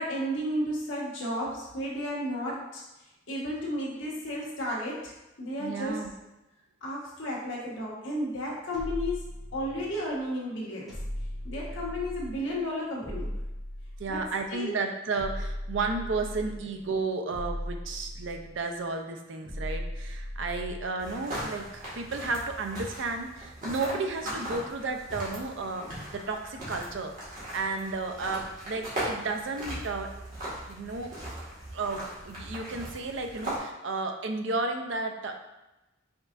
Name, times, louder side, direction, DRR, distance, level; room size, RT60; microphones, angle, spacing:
voice 1, 0.0-2.8 3.3-6.0 6.8-11.0 11.4-13.4 14.1-14.2 14.5-14.8, equal, 75° left, -5 dB, 1.4 m, -33 dB
voice 2, 5.6-6.1 14.0-30.1 30.7-31.2 31.7-35.5, right 3 dB, 70° right, 4 dB, 0.5 m, -33 dB
sound 1, 8.7-10.1 10.9-12.5 13.0-14.4 15.2-16.8 17.3-18.7 19.4-21.1, equal, ahead, 1.3 m, -37 dB
sound 2, 21.0-33.6, right 1 dB, 40° right, 1.5 m, -39 dB
5.2 x 3.7 x 2.5 m, 0.99 s
head